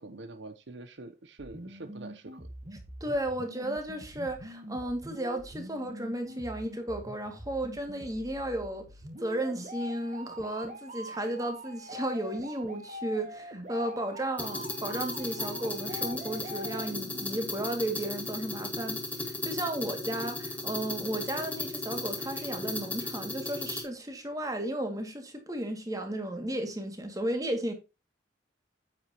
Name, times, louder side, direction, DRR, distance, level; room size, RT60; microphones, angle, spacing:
voice 1, 0.0-2.5, right 2 dB, 65° right, 0.8 m, -45 dB
sound 1, 1.4-17.4, equal, 40° right, 1.8 m, -44 dB
voice 2, 3.0-8.9 9.2-27.7, right 1 dB, 20° right, 2.2 m, -34 dB
sound 2, 14.4-23.8, left 2 dB, 5° left, 2.0 m, -36 dB
9.4 x 8.3 x 2.9 m
head